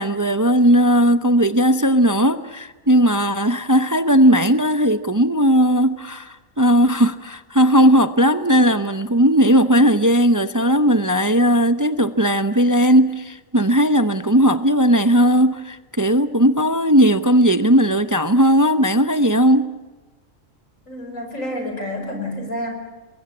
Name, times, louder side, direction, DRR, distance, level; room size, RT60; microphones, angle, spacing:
voice 1, 0.0-19.7, equal, 20° right, 0.7 m, -17 dB
voice 2, 20.9-22.7, left 1 dB, 85° left, 5.7 m, -29 dB
28.5 x 22.0 x 8.6 m
omnidirectional pair, 1.3 m